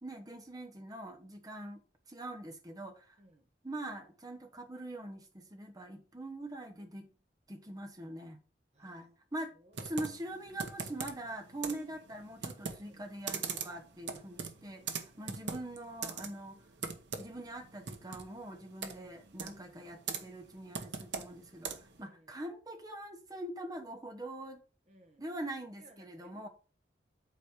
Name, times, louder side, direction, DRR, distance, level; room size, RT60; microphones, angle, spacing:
voice 1, 0.0-3.2 3.6-7.1 7.5-8.4 8.8-9.5 9.8-16.6 17.1-24.6 25.2-26.5, right 1 dB, 20° right, 1.2 m, -43 dB
voice 2, 3.2-3.5 8.7-9.2 9.5-9.9 12.8-13.1 15.1-15.5 18.8-19.2 19.6-19.9 22.1-22.4 24.9-25.3 25.8-26.5, right 1 dB, 40° right, 1.6 m, -62 dB
Computer keyboard, 9.7-22.0, right 5 dB, 80° right, 1.1 m, -42 dB
8.1 x 4.4 x 4.9 m
head